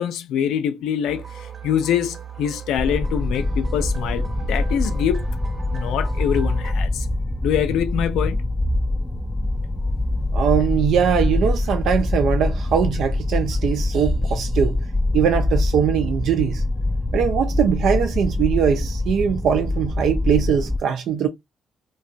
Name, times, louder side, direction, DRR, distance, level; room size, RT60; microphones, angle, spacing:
voice 1, 0.0-5.2 5.7-7.1 7.4-8.4, left 9 dB, 85° left, 0.4 m, -24 dB
sound 1, 1.1-6.7, right 7 dB, 40° right, 0.7 m, -37 dB
sound 2, 2.8-20.8, left 2 dB, 15° left, 0.3 m, -24 dB
voice 2, 10.3-14.8 15.1-16.6 17.1-21.3, right 8 dB, 75° right, 0.3 m, -21 dB
2.8 x 2.2 x 2.6 m
cardioid pair, 70°, 0 cm